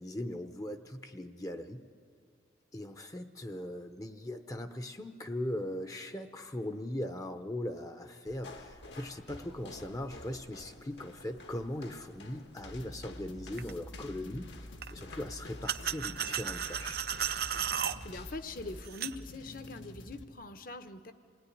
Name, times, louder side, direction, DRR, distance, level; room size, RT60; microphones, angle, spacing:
voice 1, 0.0-1.8 2.7-14.5 14.9-17.0, left 1 dB, 20° left, 8 dB, 0.7 m, -39 dB
sound 1, 8.3-19.0, left 2 dB, 70° left, 1.5 m, -51 dB
sound 2, 12.6-20.2, left 1 dB, 90° left, 1.4 m, -48 dB
sound 3, 13.6-13.7 14.8-14.9 15.7-18.0 18.9-19.2, right 9 dB, 55° right, 0.5 m, -34 dB
voice 2, 17.7-21.1, left 3 dB, 50° left, 10 dB, 0.9 m, -43 dB
27.5 x 17.5 x 10.0 m, 2.4 s
head